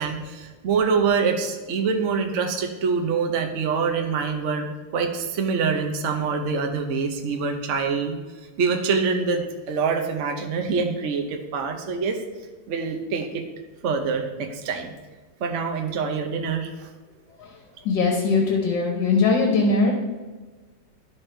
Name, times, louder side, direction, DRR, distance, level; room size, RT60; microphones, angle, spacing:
voice 1, 0.0-8.2 8.6-12.2 12.7-13.4 13.8-14.9 15.4-16.9, right 5 dB, 55° right, 4 dB, 0.8 m, -25 dB
voice 2, 17.9-19.9, left 4 dB, 75° left, 1 dB, 1.7 m, -20 dB
12.5 x 4.4 x 3.3 m, 1.3 s
omnidirectional pair, 2.0 m